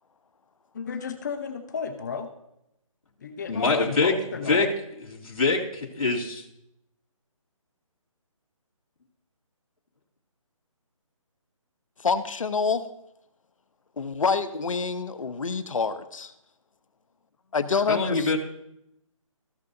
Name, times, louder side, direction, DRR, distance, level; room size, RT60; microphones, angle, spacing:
voice 1, 0.7-2.3 3.2-4.7, left 6 dB, 30° left, 7 dB, 0.8 m, -33 dB
voice 2, 3.5-4.1 4.5-4.7 5.1-6.4 17.9-18.4, left 4 dB, 85° left, -1 dB, 2.7 m, -24 dB
voice 3, 12.0-12.8 14.0-16.3 17.5-18.4, left 5 dB, 70° left, 11 dB, 0.9 m, -27 dB
16.5 x 6.7 x 2.7 m, 0.83 s
hypercardioid pair, 165°, 18 cm